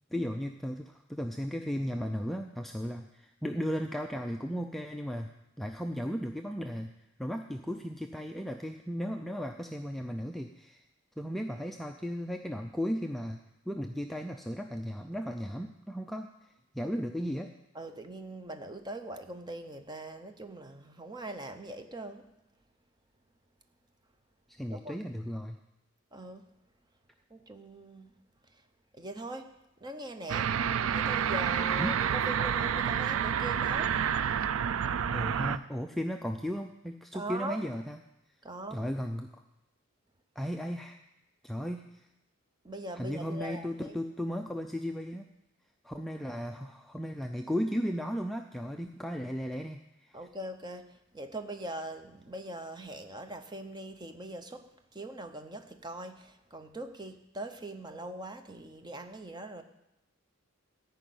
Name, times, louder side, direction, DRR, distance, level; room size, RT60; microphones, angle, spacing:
voice 1, 0.1-6.9 7.2-10.8 11.2-13.4 13.7-16.3 16.7-17.5 24.5-25.6 31.8-32.0 35.1-38.0 38.7-39.4 40.4-41.0 41.4-42.1 43.0-45.3 45.8-50.2, equal, ahead, 3 dB, 0.3 m, -35 dB
voice 2, 17.7-22.3 24.7-25.0 26.1-26.5 27.3-28.2 28.5-28.6 28.9-30.6 30.9-34.0 37.1-37.7 38.4-38.9 42.6-44.0 50.1-59.6, right 1 dB, 20° right, 7 dB, 0.7 m, -42 dB
sound 1, 30.3-35.6, right 8 dB, 70° right, 0.4 m, -29 dB
14.0 x 5.4 x 8.5 m, 0.91 s
head